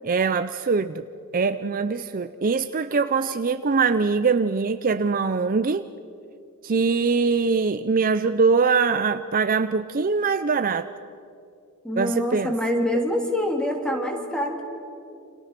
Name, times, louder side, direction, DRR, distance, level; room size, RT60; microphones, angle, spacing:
voice 1, 0.0-1.0 1.3-5.8 6.6-10.9 12.0-12.5, right 4 dB, 40° right, 11 dB, 0.6 m, -22 dB
voice 2, 11.8-14.6, left 1 dB, 5° left, 2 dB, 3.2 m, -25 dB
29.0 x 27.0 x 6.0 m, 2.6 s
head